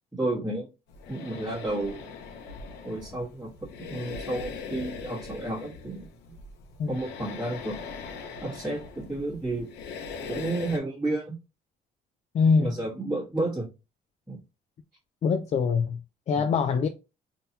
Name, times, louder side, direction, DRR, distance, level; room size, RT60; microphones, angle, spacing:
voice 1, 0.1-0.7 1.1-2.1 2.8-6.1 6.9-7.8 8.4-9.7 10.3-11.3 12.6-13.7 14.3-14.4 16.3-16.6, right 2 dB, 5° right, 1.4 m, -31 dB
sound 1, 0.9-10.8, left 5 dB, 80° left, 0.8 m, -41 dB
voice 2, 12.3-12.7 15.2-16.0 16.3-16.9, left 5 dB, 40° left, 0.4 m, -23 dB
3.7 x 2.9 x 2.7 m
cardioid pair, 110°, 17 cm